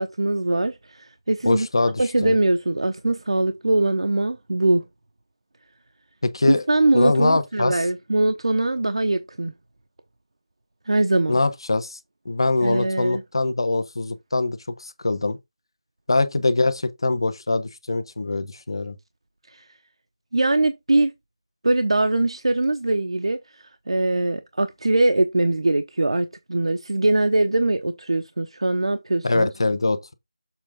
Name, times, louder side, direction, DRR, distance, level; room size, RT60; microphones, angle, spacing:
voice 1, 0.0-1.7 2.0-4.8 6.5-9.5 10.9-11.4 12.6-13.2 19.5-19.6 20.3-21.1 21.6-29.5, right 2 dB, 90° right, 0.9 m, -22 dB
voice 2, 1.4-2.3 6.2-6.6 6.9-7.8 11.3-12.0 12.2-15.4 16.1-18.9 29.2-30.1, left 2 dB, 60° left, 1.3 m, -23 dB
7.4 x 3.6 x 5.1 m
figure-of-eight pair, 175°, 3 cm